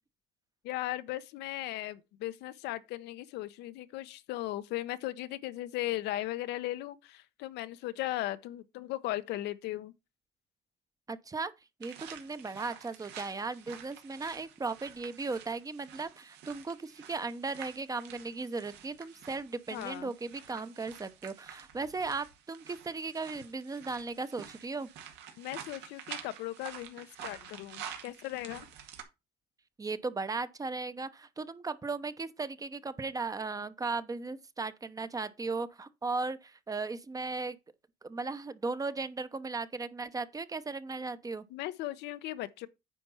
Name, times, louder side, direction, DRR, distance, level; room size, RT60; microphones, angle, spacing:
voice 1, 0.6-9.9 19.7-20.1 25.4-28.7 41.5-42.7, left 15 dB, 85° left, 0.8 m, -37 dB
voice 2, 11.1-11.5 11.8-24.9 29.8-37.6 38.0-41.4, right 3 dB, 20° right, 0.8 m, -37 dB
sound 1, 11.8-29.0, right 8 dB, 85° right, 2.1 m, -49 dB
9.3 x 4.5 x 5.5 m
cardioid pair, 110°, 17 cm